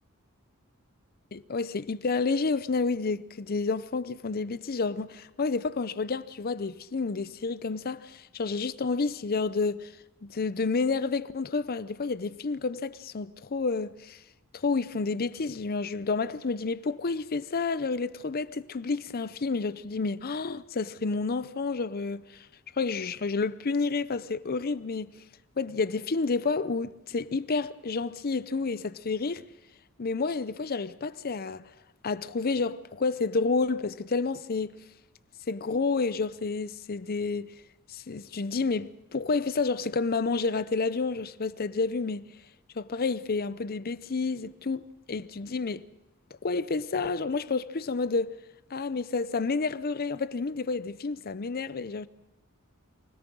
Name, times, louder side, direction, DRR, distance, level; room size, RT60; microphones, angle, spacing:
voice 1, 1.3-9.9 10.2-14.2 14.5-22.5 22.8-25.1 25.6-29.4 30.0-31.6 32.0-34.7 35.5-37.5 37.9-42.3 42.8-45.8 46.4-48.3 48.7-52.1, left 4 dB, 45° left, 0.6 m, -30 dB
24.0 x 17.5 x 6.2 m
head